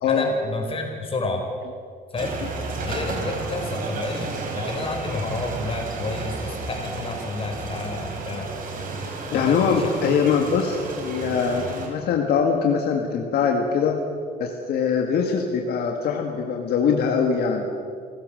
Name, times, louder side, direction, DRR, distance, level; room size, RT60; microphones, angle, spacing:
voice 1, 0.1-1.5 2.1-2.4 2.8-8.5 9.3-9.9, left 3 dB, 35° left, 2 dB, 5.0 m, -30 dB
sound 1, 2.2-11.9, right 3 dB, 55° right, 4.7 m, -32 dB
voice 2, 9.3-14.0 14.4-17.7, left 6 dB, 70° left, 2 dB, 2.0 m, -22 dB
28.5 x 15.0 x 6.6 m, 2.3 s
cardioid pair, 110°, 17 cm